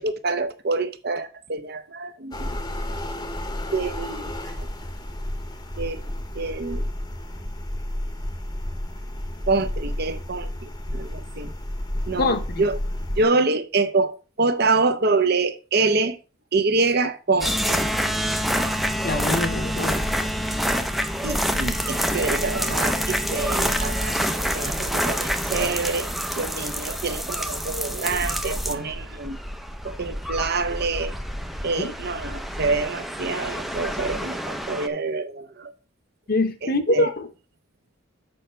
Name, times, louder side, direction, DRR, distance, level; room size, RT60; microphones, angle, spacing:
voice 1, 0.0-2.5 3.7-4.2 4.6-4.7 5.8-6.0 6.3-6.9 9.5-11.5 12.1-12.8 13.2-16.2 16.5-17.8 21.2-29.4 29.8-31.1 31.6-35.7 36.6-37.1, right 3 dB, 50° right, 0.8 m, -26 dB
sound 1, 2.3-13.2, left 1 dB, 20° left, 0.9 m, -31 dB
voice 2, 12.2-12.6 19.0-20.0 31.8-31.9 36.3-37.3, left 2 dB, 50° left, 0.9 m, -24 dB
sound 2, 17.4-34.9, equal, ahead, 0.5 m, -27 dB
7.1 x 5.5 x 4.4 m
head